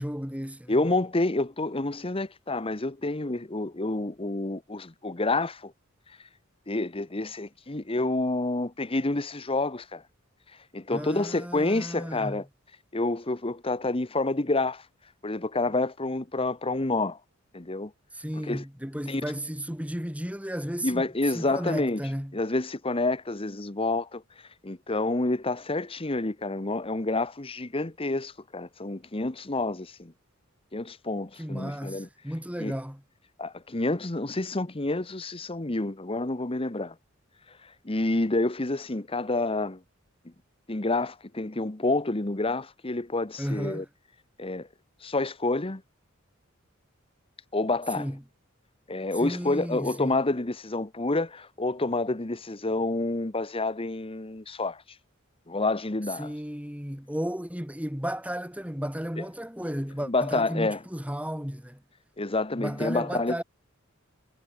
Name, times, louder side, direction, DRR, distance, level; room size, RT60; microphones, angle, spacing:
voice 1, 0.0-0.8 10.9-12.4 18.1-21.0 21.3-22.4 31.4-33.0 43.4-43.9 47.9-48.2 49.2-50.2 56.2-61.8 62.6-63.4, equal, 5° right, 4.7 m, -34 dB
voice 2, 0.7-5.7 6.7-10.0 10.7-12.4 12.9-14.8 15.2-17.2 17.5-17.9 18.4-18.6 19.1-19.2 20.8-22.0 22.3-24.2 24.6-30.1 30.7-32.1 32.6-32.7 33.4-36.9 37.8-39.8 40.2-40.3 40.7-43.8 44.4-44.7 45.0-45.8 47.5-48.1 48.9-54.8 55.5-56.3 60.1-60.8 62.2-63.4, left 2 dB, 25° left, 1.2 m, -28 dB
head